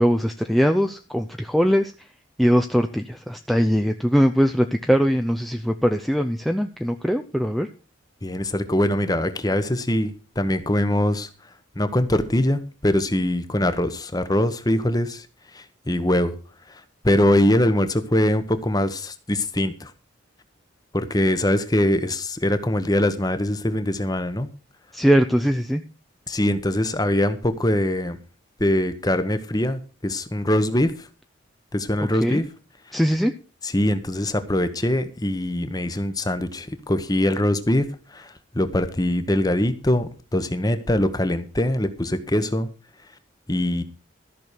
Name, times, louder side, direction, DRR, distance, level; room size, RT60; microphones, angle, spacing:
voice 1, 0.0-1.9 2.4-7.7 24.9-25.8 32.2-32.4 32.9-33.3, equal, ahead, 5 dB, 0.5 m, -21 dB
voice 2, 8.2-11.3 11.8-15.3 15.5-16.4 16.7-19.9 20.9-24.5 26.3-28.2 28.6-31.1 31.7-32.4 32.9-33.0 33.6-42.7 43.5-43.8, left 1 dB, 20° left, 11 dB, 1.0 m, -23 dB
14.0 x 6.2 x 6.7 m, 0.36 s
head